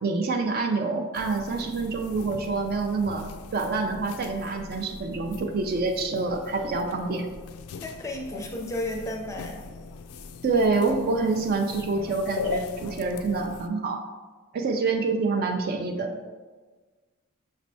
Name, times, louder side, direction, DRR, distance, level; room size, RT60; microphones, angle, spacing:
voice 1, 0.0-3.3 3.5-7.3 10.4-14.0 14.5-16.2, right 3 dB, 45° right, 4 dB, 0.4 m, -26 dB
sound 1, 1.1-13.7, left 4 dB, 90° left, 0.3 m, -39 dB
voice 2, 7.8-9.6, left 1 dB, 15° left, 1 dB, 0.5 m, -33 dB
6.1 x 3.2 x 2.7 m, 1.4 s
head